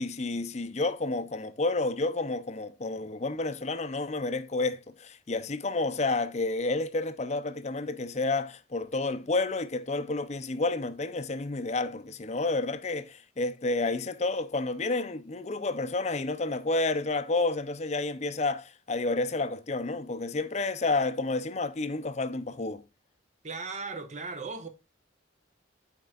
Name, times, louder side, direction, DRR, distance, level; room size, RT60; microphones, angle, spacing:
voice 1, 0.0-22.8, left 3 dB, 35° left, 0.6 m, -30 dB
voice 2, 23.4-24.7, right 4 dB, 35° right, 1.0 m, -37 dB
13.0 x 4.5 x 2.4 m
head